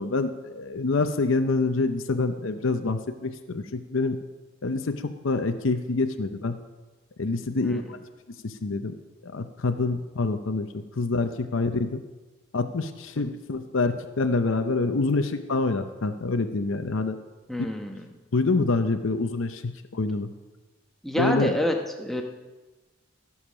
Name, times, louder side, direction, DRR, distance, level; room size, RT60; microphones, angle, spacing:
voice 1, 0.0-4.2 4.6-5.0 5.2-6.5 7.2-8.0 8.4-8.9 9.2-12.0 12.5-17.2 18.3-19.6 19.9-20.3 21.2-21.6, left 3 dB, 70° left, 8 dB, 0.7 m, -26 dB
voice 2, 17.5-18.0 21.0-22.2, equal, ahead, 2 dB, 1.0 m, -28 dB
16.0 x 7.2 x 6.2 m, 1.2 s
head